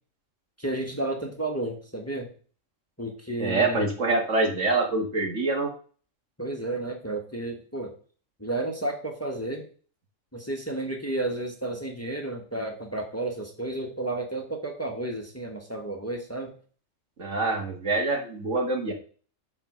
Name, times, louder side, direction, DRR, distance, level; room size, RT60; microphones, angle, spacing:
voice 1, 0.6-2.3 3.0-3.9 6.4-7.9 8.4-9.6 10.3-16.5, right 2 dB, 10° left, 2 dB, 1.5 m, -32 dB
voice 2, 3.4-5.7 17.2-18.9, right 3 dB, 65° right, 2 dB, 2.2 m, -25 dB
10.5 x 4.2 x 6.5 m, 0.42 s
omnidirectional pair, 1.4 m